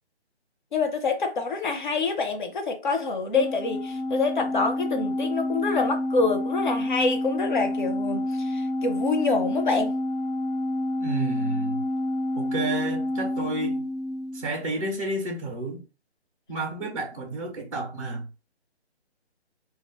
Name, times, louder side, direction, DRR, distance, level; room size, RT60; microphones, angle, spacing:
voice 1, 0.7-10.0, left 4 dB, 45° left, 0.6 m, -26 dB
Organ, 3.3-14.6, left 1 dB, 75° left, 0.8 m, -29 dB
voice 2, 11.0-11.8 12.4-13.9 14.3-15.8 16.5-18.3, right 2 dB, 30° right, 0.4 m, -31 dB
2.3 x 2.1 x 2.8 m
figure-of-eight pair, 160°, 34 cm